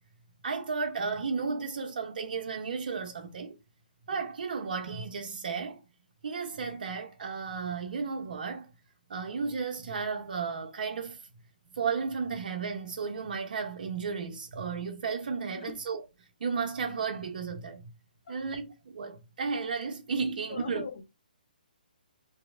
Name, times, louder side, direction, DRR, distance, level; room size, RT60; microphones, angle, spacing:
voice 1, 0.4-3.6 4.1-5.8 6.2-8.7 9.1-11.2 11.7-16.0 16.4-17.9 18.3-20.9, right 5 dB, 65° right, 0.8 m, -33 dB
voice 2, 20.3-21.0, left 6 dB, 55° left, 0.7 m, -41 dB
3.0 x 2.8 x 3.6 m
hypercardioid pair, 155°, 5 cm